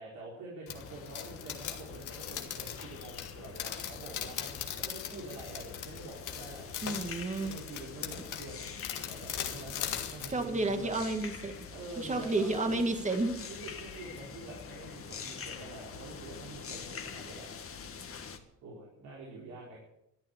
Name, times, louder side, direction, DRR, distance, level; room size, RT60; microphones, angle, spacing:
voice 1, 0.0-6.7 7.4-11.0 11.7-12.9 13.5-17.5 18.6-19.8, right 2 dB, 85° right, -4 dB, 4.6 m, -46 dB
sound 1, 0.7-10.3, left 10 dB, 85° left, 1.9 m, -40 dB
sound 2, 0.7-18.4, left 6 dB, 45° left, 1.8 m, -46 dB
voice 2, 6.8-7.5 10.3-11.5 12.0-13.5, right 2 dB, 25° right, 5 dB, 2.1 m, -31 dB
13.0 x 11.0 x 8.2 m, 0.82 s
cardioid pair, 90°, 30 cm